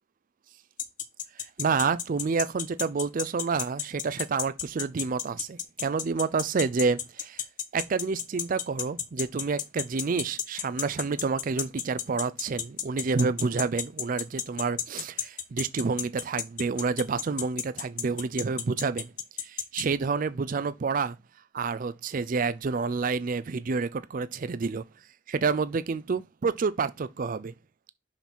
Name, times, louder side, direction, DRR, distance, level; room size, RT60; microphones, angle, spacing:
sound 1, 0.8-19.8, left 10 dB, 45° left, 0.9 m, -31 dB
voice 1, 1.4-7.4 7.7-19.1 19.4-21.2 21.5-24.8 25.3-27.5, right 4 dB, 45° right, 0.4 m, -29 dB
6.0 x 5.7 x 4.3 m
head